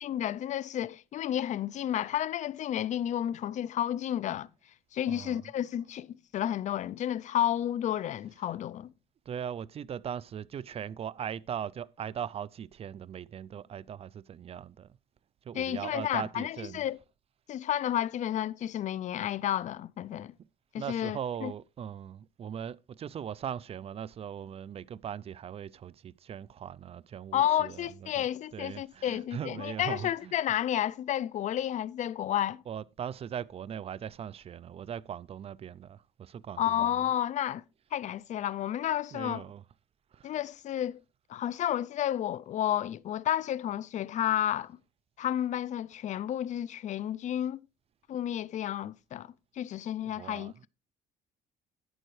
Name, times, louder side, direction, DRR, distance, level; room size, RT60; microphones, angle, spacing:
voice 1, 0.0-4.5 4.9-8.9 15.5-17.0 17.5-20.3 20.7-21.5 27.3-32.6 36.6-37.6 37.9-39.4 40.2-41.0 41.3-44.8 45.2-47.6 48.1-50.7, left 11 dB, 45° left, 0.4 m, -31 dB
voice 2, 5.1-5.4 9.3-14.9 15.5-16.8 20.8-27.9 28.2-28.3 28.5-30.3 32.7-36.9 39.1-39.6 40.1-40.4 50.0-50.5, right 8 dB, 35° right, 0.4 m, -39 dB
11.0 x 8.7 x 3.2 m
cardioid pair, 110°, 17 cm